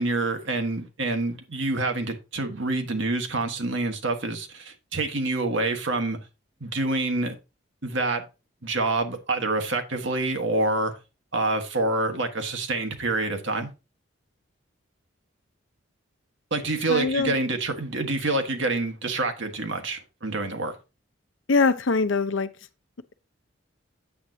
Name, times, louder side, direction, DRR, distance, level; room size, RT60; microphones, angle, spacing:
voice 1, 0.0-6.2 6.6-7.4 7.8-8.2 8.6-10.9 11.3-13.7 16.5-20.7, right 2 dB, 70° right, 1.6 m, -27 dB
voice 2, 16.9-17.3 21.5-22.5, left 4 dB, 75° left, 0.7 m, -22 dB
8.6 x 7.7 x 2.8 m
head